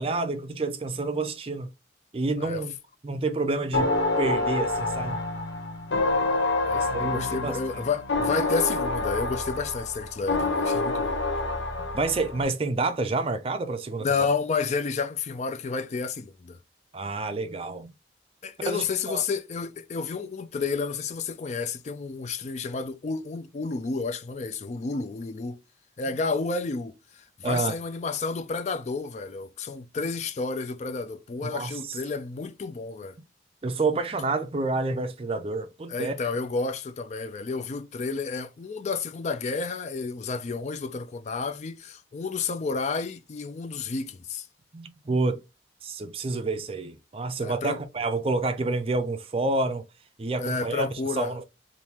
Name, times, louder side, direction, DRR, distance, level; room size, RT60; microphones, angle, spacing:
voice 1, 0.0-1.7 2.1-2.7 3.0-5.2 6.7-7.6 11.8-14.1 16.9-17.9 18.6-19.2 27.4-27.8 31.4-32.0 33.6-36.2 44.7-45.4 45.8-49.8 50.2-50.9 51.2-51.4, right 3 dB, 30° right, 0.4 m, -28 dB
sound 1, 3.7-12.4, left 2 dB, 85° left, 0.7 m, -27 dB
voice 2, 6.6-11.2 14.0-16.6 18.4-25.6 26.0-33.2 35.9-44.5 47.4-47.8 50.4-51.3, left 4 dB, 40° left, 0.3 m, -31 dB
3.5 x 2.6 x 2.8 m
head